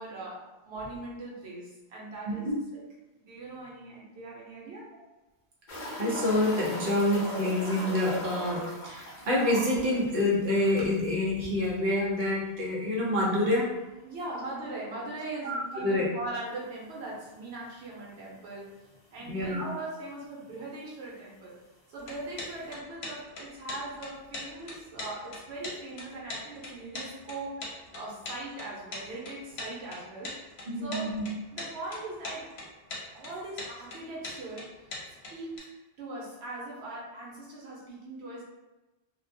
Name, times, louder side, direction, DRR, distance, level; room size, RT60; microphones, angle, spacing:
voice 1, 0.0-2.5 3.2-4.9 14.0-18.7 19.1-21.5 21.9-27.7 27.9-30.3 30.8-31.1 31.5-32.5 33.1-34.8 35.3-35.7 36.0-38.4, right 2 dB, 90° right, -4 dB, 1.0 m, -40 dB
sound 1, 5.7-11.0 11.3-11.4 11.8-11.9 14.7-14.8 16.4-16.5 17.3-17.4 17.6-17.7 18.6-18.7 18.9-19.5 20.5-20.6, equal, 50° left, 0.8 m, -38 dB
voice 2, 6.0-13.7 15.4-16.1 19.3-19.7 30.6-31.3, left 1 dB, 60° right, -4 dB, 0.8 m, -27 dB
sound 2, 22.0-35.6, left 2 dB, 80° left, 0.9 m, -41 dB
2.4 x 2.1 x 2.6 m, 1.1 s
omnidirectional pair, 1.1 m